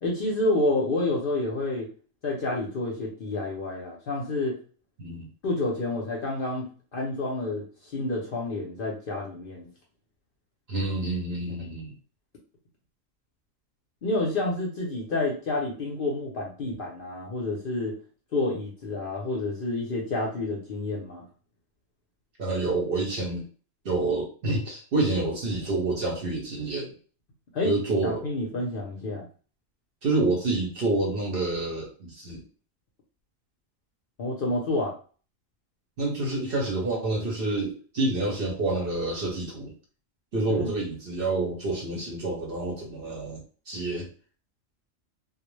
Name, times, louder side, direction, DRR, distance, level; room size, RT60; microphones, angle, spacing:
voice 1, 0.0-1.9 2.2-4.6 5.4-6.6 6.9-9.7 14.0-18.0 18.3-21.2 27.5-27.7 28.0-29.2 34.2-34.9 40.5-40.7, left 2 dB, 55° left, -2 dB, 0.6 m, -29 dB
voice 2, 10.7-11.9 22.4-23.4 23.8-26.9 27.6-28.2 30.0-32.4 36.0-39.7 40.3-44.1, right 2 dB, 55° right, -2 dB, 0.7 m, -28 dB
2.3 x 2.0 x 3.0 m, 0.39 s
omnidirectional pair, 1.4 m